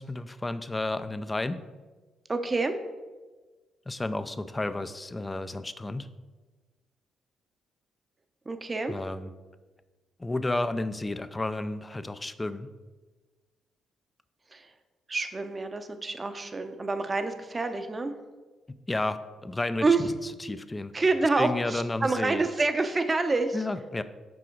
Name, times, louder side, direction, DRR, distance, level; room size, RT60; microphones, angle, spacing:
voice 1, 0.0-1.6 3.9-6.1 8.9-9.3 10.2-12.7 18.9-19.9 20.4-20.9 21.4-22.4 23.5-24.0, left 2 dB, 20° left, 12 dB, 0.4 m, -31 dB
voice 2, 2.3-2.8 8.5-9.0 14.5-14.7 15.1-18.1 19.8-20.1 20.9-23.6, right 3 dB, 25° right, 8 dB, 0.6 m, -27 dB
6.2 x 4.8 x 4.5 m, 1.3 s
cardioid pair, 90°, 0 cm